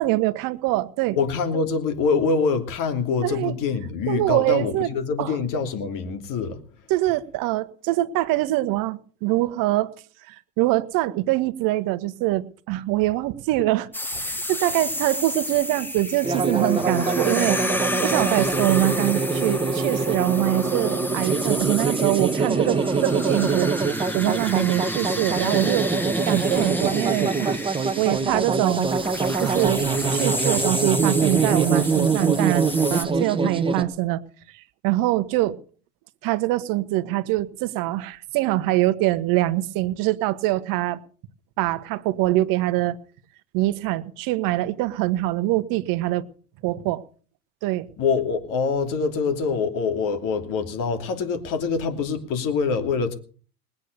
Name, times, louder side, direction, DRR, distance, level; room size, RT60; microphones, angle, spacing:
voice 1, 0.0-1.2 3.2-3.5 4.1-4.9 5.2-5.4 6.9-9.9 10.3-13.9 14.2-17.6 18.0-23.7 24.1-25.9 26.3-27.6 28.0-28.9 29.4-29.9 30.1-34.2 34.5-35.6 36.2-41.0 41.6-43.0 43.5-46.3 46.6-47.0 47.6-47.9, right 17 dB, 45° right, 1.3 m, -24 dB
voice 2, 1.2-6.6 48.0-53.1, left 5 dB, 40° left, 2.9 m, -25 dB
sound 1, 13.9-33.1, left 1 dB, 5° left, 1.6 m, -32 dB
sound 2, 16.2-33.8, right 4 dB, 10° right, 1.5 m, -24 dB
20.0 x 8.5 x 6.7 m
hypercardioid pair, 105°, 47 cm